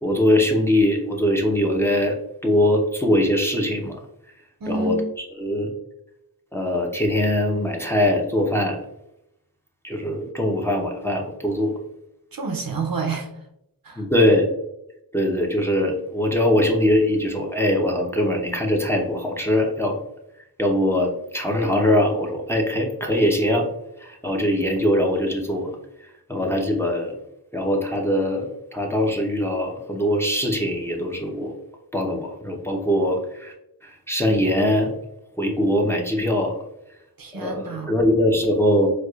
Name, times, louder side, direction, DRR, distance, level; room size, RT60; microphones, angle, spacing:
voice 1, 0.0-2.2 2.4-4.0 4.7-5.7 6.5-8.8 9.8-11.7 14.0-14.5 15.1-20.0 20.6-23.7 24.0-25.7 26.3-27.2 27.5-31.5 31.9-33.5 34.1-34.9 35.4-36.6 37.3-38.9, left 1 dB, 5° left, 0 dB, 0.6 m, -22 dB
voice 2, 4.6-5.1 12.3-13.3 13.8-14.0 37.2-38.0, right 4 dB, 60° right, 3 dB, 0.6 m, -28 dB
4.6 x 2.3 x 2.3 m, 0.83 s
wide cardioid pair, 45°, 39 cm